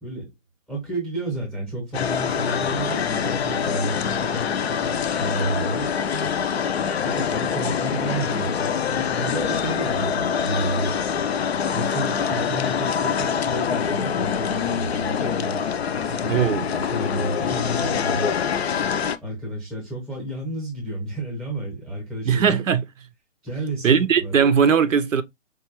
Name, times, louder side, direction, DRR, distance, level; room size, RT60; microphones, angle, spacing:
voice 1, 0.7-5.9 7.0-11.0 11.7-18.4 19.2-22.6 23.4-24.4, right 1 dB, ahead, 0.7 m, -31 dB
sound 1, 1.9-19.2, left 7 dB, 55° left, 0.4 m, -25 dB
voice 2, 16.3-16.6 22.3-22.8 23.8-25.2, right 7 dB, 75° right, 0.6 m, -19 dB
4.7 x 2.2 x 2.9 m
figure-of-eight pair, 150°, 39 cm